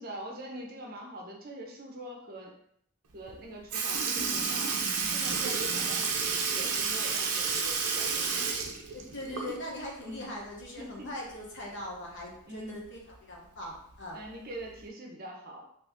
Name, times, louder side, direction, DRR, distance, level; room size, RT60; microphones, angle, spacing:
voice 1, 0.0-2.6 3.1-6.2 6.5-8.5 10.0-10.3 10.8-11.1 12.4-12.8 14.1-15.6, right 1 dB, 45° right, 0 dB, 0.6 m, -43 dB
Sink (filling or washing) / Liquid, 3.3-3.4 3.7-9.8 10.2-10.3 11.8-11.9 12.8-12.9 13.7-14.0 14.8-14.9, right 5 dB, 90° right, 0.6 m, -30 dB
voice 2, 8.9-14.2, left 1 dB, 55° left, -2 dB, 0.9 m, -41 dB
2.9 x 2.7 x 3.4 m, 0.69 s
head